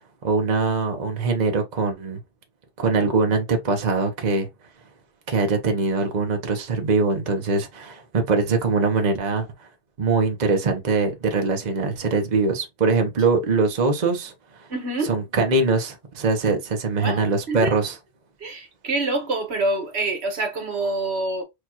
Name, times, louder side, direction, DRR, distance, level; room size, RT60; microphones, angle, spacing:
voice 1, 0.2-2.2 2.8-4.5 5.3-9.7 10.0-14.3 14.6-14.7 15.0-17.9, right 4 dB, 45° right, 1.0 m, -22 dB
voice 2, 14.7-15.1 17.0-17.7 18.4-21.4, right 2 dB, 75° right, 1.4 m, -26 dB
6.4 x 2.4 x 2.9 m
omnidirectional pair, 1.1 m